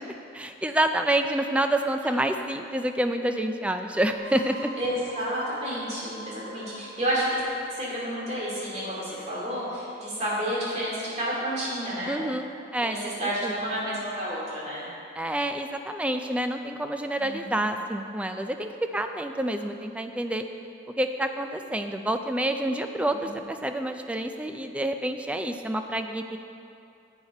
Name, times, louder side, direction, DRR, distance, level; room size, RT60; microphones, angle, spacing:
voice 1, 0.3-4.7 12.1-13.1 13.4-13.5 15.2-20.5 21.0-26.4, right 1 dB, 5° right, 6 dB, 0.3 m, -28 dB
sound 1, 4.1-9.6, left 1 dB, 85° right, 1.3 m, -43 dB
voice 2, 4.8-7.4 7.8-12.2 12.8-14.9 17.1-17.5, equal, 35° right, -6 dB, 2.6 m, -30 dB
10.5 x 8.2 x 4.2 m, 2.6 s
head